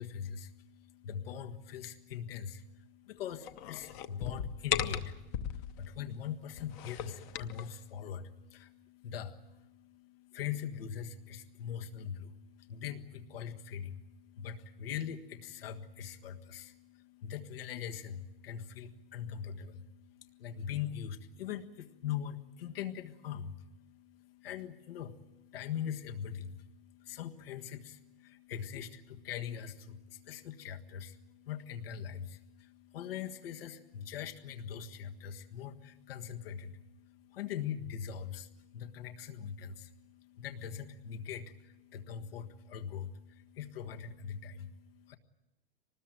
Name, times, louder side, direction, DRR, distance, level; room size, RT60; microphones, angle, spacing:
voice 1, 0.0-45.2, left 8 dB, 80° left, 5 dB, 1.7 m, -42 dB
sound 1, 3.4-5.9 6.5-7.7, left 10 dB, 30° left, 0.9 m, -37 dB
24.5 x 20.0 x 9.1 m, 1.0 s
supercardioid pair, 175°, 29 cm